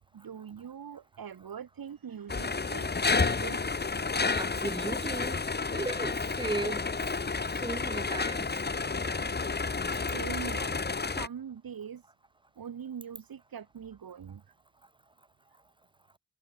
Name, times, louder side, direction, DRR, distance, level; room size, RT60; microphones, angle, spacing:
voice 1, 0.1-3.8 10.0-12.1 12.6-14.4, right 8 dB, 75° right, 6.7 m, -43 dB
sound 1, 2.3-11.3, left 4 dB, 30° left, 2.0 m, -30 dB
voice 2, 4.3-5.4 5.7-7.0 7.6-8.5, right 2 dB, 15° right, 4.7 m, -36 dB
wide cardioid pair, 145°, 35 cm